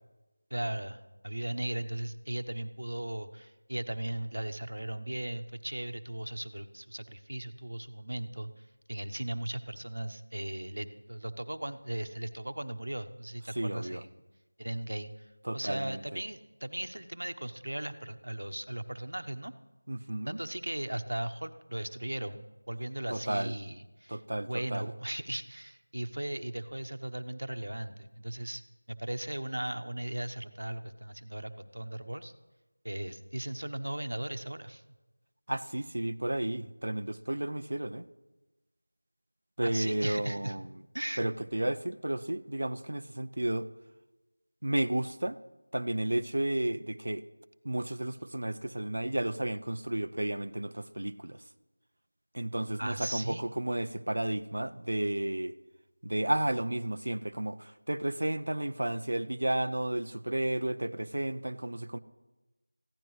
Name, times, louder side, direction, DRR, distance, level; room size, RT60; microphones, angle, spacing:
voice 1, 0.5-14.2 14.6-19.5 20.3-24.2 24.5-28.6 28.9-32.3 32.8-34.8 39.6-40.5 40.9-41.3 52.8-53.4, right 1 dB, 90° right, 9 dB, 1.1 m, -37 dB
voice 2, 13.6-14.0 15.4-16.2 19.9-20.4 23.1-23.5 24.1-24.9 35.5-38.1 39.6-40.7 41.2-43.7 44.6-45.4 45.7-47.2 47.6-51.4 52.3-55.6 56.0-62.0, right 1 dB, 60° right, 12 dB, 0.6 m, -32 dB
22.5 x 15.5 x 3.3 m, 1.1 s
figure-of-eight pair, 180°, 0 cm